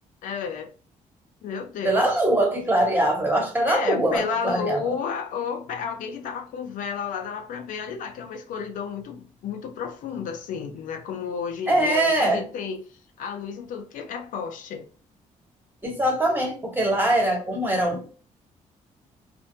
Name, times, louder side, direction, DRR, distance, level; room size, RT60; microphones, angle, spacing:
voice 1, 0.2-0.7 1.4-2.1 3.7-12.8 13.2-14.9, left 6 dB, 85° left, 0.5 m, -32 dB
voice 2, 1.8-4.8 11.7-12.4 15.8-18.1, right 1 dB, 15° right, 1.0 m, -22 dB
2.5 x 2.2 x 2.6 m
cardioid pair, 120°, 13 cm